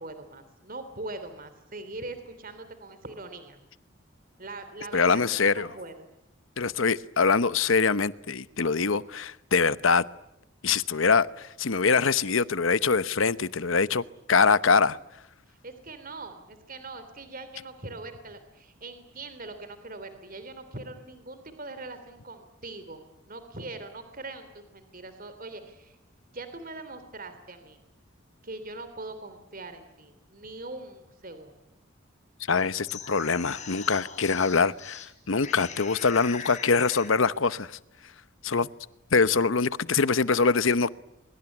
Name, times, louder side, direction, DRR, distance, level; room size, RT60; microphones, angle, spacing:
voice 1, 0.0-3.6 4.4-6.1 15.5-26.0 26.3-27.8 28.4-31.5, right 2 dB, 45° right, 3.0 m, -41 dB
voice 2, 4.9-5.7 6.6-10.0 10.6-14.0 14.3-15.0 32.5-37.8 38.4-38.7 39.1-40.9, left 5 dB, 70° left, 0.9 m, -24 dB
sound 1, 32.6-35.1 35.4-37.2, left 6 dB, 35° left, 4.1 m, -41 dB
23.5 x 23.5 x 9.9 m
head